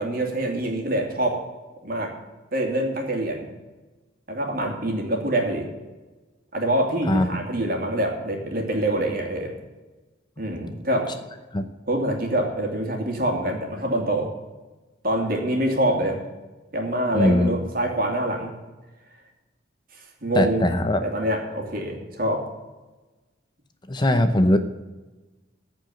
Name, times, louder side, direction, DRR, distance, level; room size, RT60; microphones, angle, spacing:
voice 1, 0.0-1.4 1.8-2.1 2.5-3.5 4.3-5.7 6.5-9.5 10.4-11.1 11.9-14.3 15.0-16.2 16.7-18.6 20.2-20.7 21.0-22.4, right 1 dB, 50° right, 2 dB, 2.6 m, -25 dB
voice 2, 7.1-7.4 11.5-11.7 17.1-17.5 20.3-21.0 23.9-24.6, left 1 dB, 25° left, 9 dB, 0.7 m, -20 dB
15.0 x 5.1 x 9.3 m, 1.2 s
head